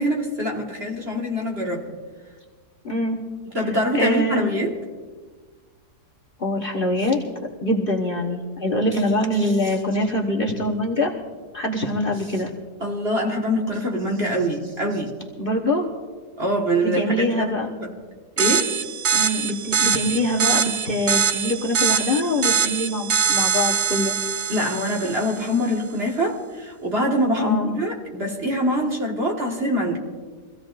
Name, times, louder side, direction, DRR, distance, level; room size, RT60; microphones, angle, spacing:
voice 1, 0.0-1.9 3.5-4.7 12.8-15.1 16.4-17.5 17.8-17.9 18.4-18.7 24.5-30.0, equal, 40° right, -1 dB, 1.9 m, -24 dB
voice 2, 2.8-3.2 3.9-4.4 6.4-7.2 7.6-11.1 11.5-12.5 15.4-15.9 17.0-17.7 19.1-24.1 27.4-27.8, left 1 dB, 35° left, 1 dB, 1.3 m, -24 dB
sound 1, 18.4-25.5, right 7 dB, 55° right, 0.8 m, -23 dB
23.5 x 16.0 x 2.6 m, 1.5 s
omnidirectional pair, 1.8 m